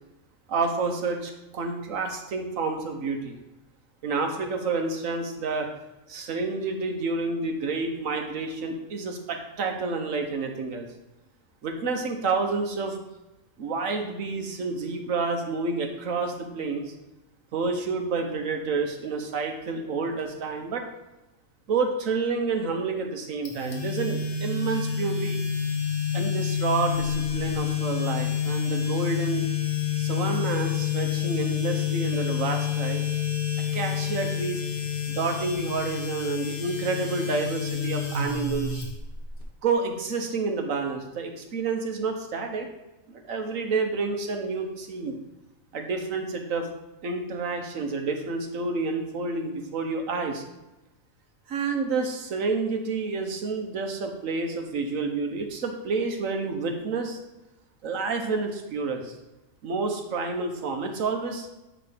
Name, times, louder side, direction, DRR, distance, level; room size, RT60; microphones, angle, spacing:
voice 1, 0.5-3.4 4.0-5.7 6.1-10.9 11.6-13.0 13.6-16.9 17.5-20.8 21.7-25.4 26.1-29.4 30.0-33.0 33.7-34.6 35.1-38.8 39.6-42.7 43.1-45.2 45.7-46.7 47.0-50.4 51.5-57.2 57.8-59.1 59.6-61.5, right 4 dB, 80° right, 4 dB, 1.4 m, -29 dB
sound 1, 23.5-39.4, left 8 dB, 45° left, 1.4 m, -28 dB
9.1 x 3.3 x 5.1 m, 1.0 s
omnidirectional pair, 1.4 m